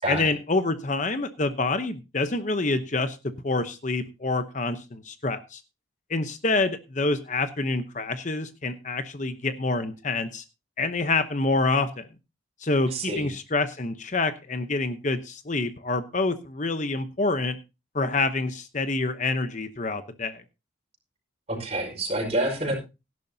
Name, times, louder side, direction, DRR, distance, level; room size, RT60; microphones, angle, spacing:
voice 1, 0.1-3.2 3.4-5.6 6.1-10.4 10.8-12.1 12.6-17.6 17.9-20.4, left 3 dB, 40° left, 10 dB, 0.8 m, -27 dB
voice 2, 12.9-13.3 21.5-22.8, right 1 dB, 30° right, 2 dB, 5.3 m, -27 dB
17.5 x 11.0 x 2.7 m, 0.28 s
head